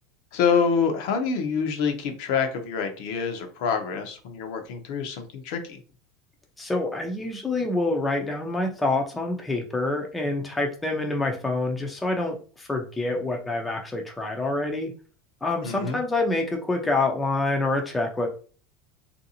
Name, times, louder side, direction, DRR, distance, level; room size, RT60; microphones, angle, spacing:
voice 1, 0.3-5.8 15.6-16.0, left 6 dB, 60° left, 5 dB, 0.6 m, -26 dB
voice 2, 6.6-14.9 15.4-18.3, left 2 dB, 10° left, 2 dB, 0.4 m, -27 dB
3.1 x 2.6 x 2.7 m, 0.39 s
supercardioid pair, 165°, 0 cm